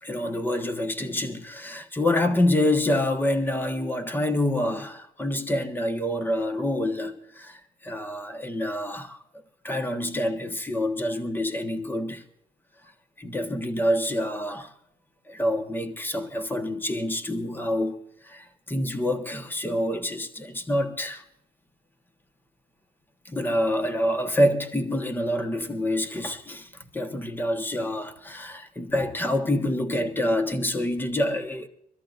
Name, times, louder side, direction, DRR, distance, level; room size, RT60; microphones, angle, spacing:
voice 1, 0.0-9.2 9.6-12.2 13.2-14.7 15.3-21.2 23.2-31.7, left 1 dB, 10° left, 1.3 m, -27 dB
24.0 x 13.5 x 2.6 m
cardioid pair, 110°, 17 cm